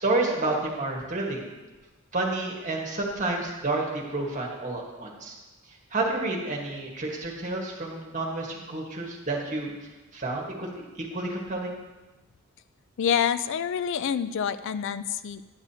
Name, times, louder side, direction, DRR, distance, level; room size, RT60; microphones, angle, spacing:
voice 1, 0.0-1.5 2.1-5.4 5.9-9.7 10.1-11.8, right 2 dB, 35° right, -1 dB, 1.4 m, -30 dB
voice 2, 13.0-15.4, left 8 dB, 55° left, 13 dB, 0.3 m, -27 dB
9.6 x 8.3 x 2.8 m, 1.1 s
head